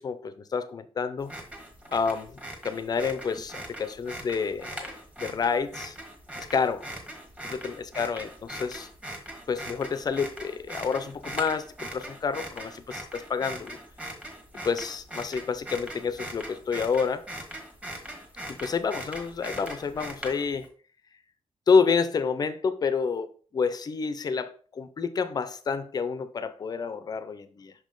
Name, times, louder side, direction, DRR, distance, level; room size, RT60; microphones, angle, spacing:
voice 1, 0.0-1.3 1.9-2.3 2.6-4.9 5.2-5.9 6.5-6.9 7.5-8.9 9.5-13.8 14.6-17.2 18.5-20.7 21.7-27.7, left 5 dB, 40° left, 0.6 m, -28 dB
sound 1, 1.2-20.7, right 1 dB, 10° right, 1.4 m, -41 dB
6.1 x 5.2 x 3.8 m
wide cardioid pair, 175°, 10 cm